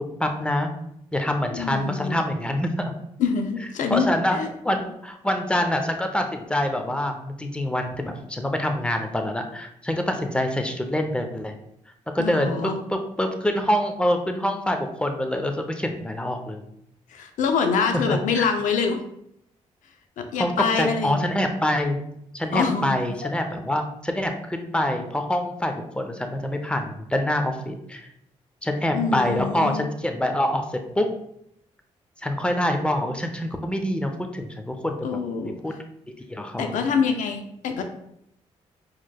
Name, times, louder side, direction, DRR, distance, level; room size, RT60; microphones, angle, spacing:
voice 1, 0.2-0.7 1.1-3.0 3.9-4.4 4.6-11.5 12.1-16.6 18.1-18.5 20.4-22.0 22.3-28.1 28.6-31.1 32.2-35.2 35.6-35.7 36.3-36.9, left 1 dB, 10° left, 5 dB, 0.6 m, -25 dB
voice 2, 1.5-2.2 3.2-4.1 4.3-4.5 12.2-12.8 17.1-19.0 20.2-21.4 22.5-23.0 28.9-29.8 35.0-35.5 36.6-37.8, left 5 dB, 80° left, 6 dB, 0.5 m, -25 dB
4.5 x 3.0 x 2.2 m, 0.76 s
cardioid pair, 65°, 13 cm